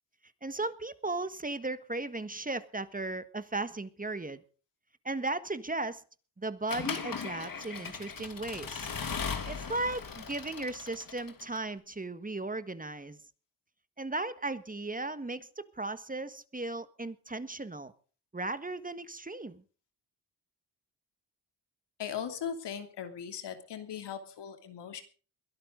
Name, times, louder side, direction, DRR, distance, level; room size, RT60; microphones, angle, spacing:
voice 1, 0.4-4.4 5.0-6.0 6.4-8.9 9.5-13.2 14.0-17.9 18.3-19.6, right 2 dB, 20° right, 12 dB, 1.5 m, -36 dB
Accelerating revving vroom / Mechanisms, 6.7-11.6, left 6 dB, 55° left, 2.8 m, -38 dB
voice 2, 22.0-25.0, left 8 dB, 90° left, 7 dB, 2.9 m, -39 dB
22.0 x 12.5 x 3.9 m, 0.38 s
cardioid pair, 65°, 40 cm